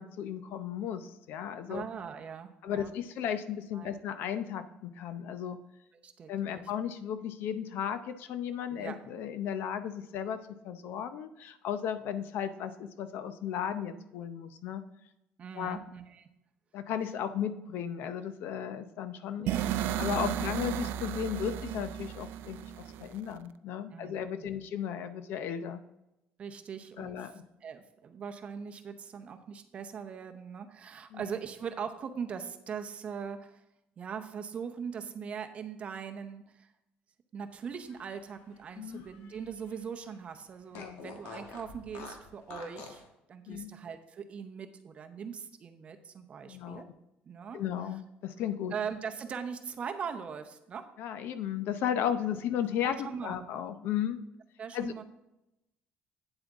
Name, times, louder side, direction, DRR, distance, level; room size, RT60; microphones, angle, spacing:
voice 1, 0.0-1.9 2.6-5.6 6.3-10.4 10.6-14.8 15.5-15.8 16.7-19.5 20.0-22.7 23.0-25.8 27.0-27.4 31.1-31.2 38.8-39.1 40.7-41.0 43.5-43.7 46.5-46.8 47.5-48.7 51.0-54.2 54.7-55.0, left 9 dB, 65° left, 11 dB, 0.6 m, -35 dB
voice 2, 1.7-2.9 3.7-3.9 6.0-6.6 8.7-9.0 15.4-16.3 19.4-19.8 20.3-20.5 23.9-24.6 26.4-27.3 27.6-33.6 34.0-36.7 37.3-43.0 43.3-46.9 47.2-47.6 48.7-50.9 52.8-53.5 54.6-55.0, right 6 dB, 30° right, 8 dB, 0.7 m, -41 dB
sound 1, 19.5-23.4, right 10 dB, 65° right, 0.4 m, -34 dB
Fart, 37.7-39.8 40.1-40.2 40.7-43.1, left 4 dB, 85° left, 1.5 m, -48 dB
8.9 x 7.8 x 3.5 m, 0.90 s
cardioid pair, 160°, 4 cm